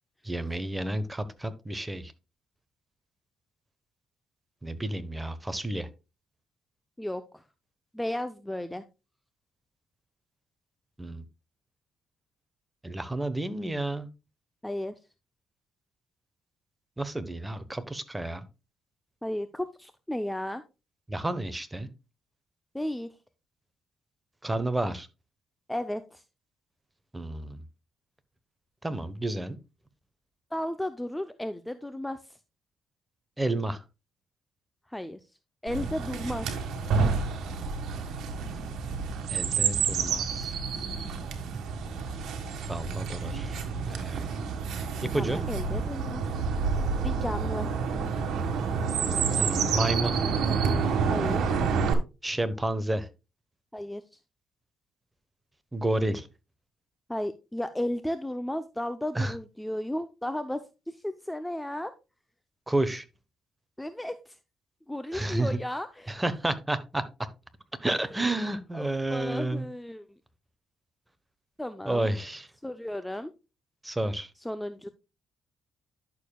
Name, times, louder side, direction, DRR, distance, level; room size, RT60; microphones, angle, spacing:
voice 1, 0.2-2.1 4.6-5.9 11.0-11.2 12.8-14.1 17.0-18.4 21.1-21.9 24.4-25.1 27.1-27.6 28.8-29.6 33.4-33.8 39.3-40.5 42.7-44.3 45.0-45.4 49.4-50.2 52.2-53.1 55.7-56.3 59.1-59.3 62.7-63.0 65.1-65.6 66.1-67.0 67.8-69.7 71.8-72.5 73.8-74.3, right 1 dB, 10° right, 12 dB, 1.0 m, -30 dB
voice 2, 7.0-7.4 7.9-8.8 14.6-15.0 19.2-20.6 22.7-23.1 25.7-26.2 30.5-32.4 34.9-35.2 35.6-36.5 45.1-46.2 47.0-47.7 51.1-51.6 53.7-54.2 57.1-61.9 63.8-64.4 64.9-66.2 67.9-68.2 68.7-70.1 71.6-72.1 72.6-73.3 74.4-74.9, left 1 dB, 5° left, 10 dB, 0.6 m, -34 dB
Chirp tweet, 35.7-51.9, right 5 dB, 75° right, 1.6 m, -29 dB
11.0 x 6.7 x 2.3 m, 0.28 s
cardioid pair, 90°, 0 cm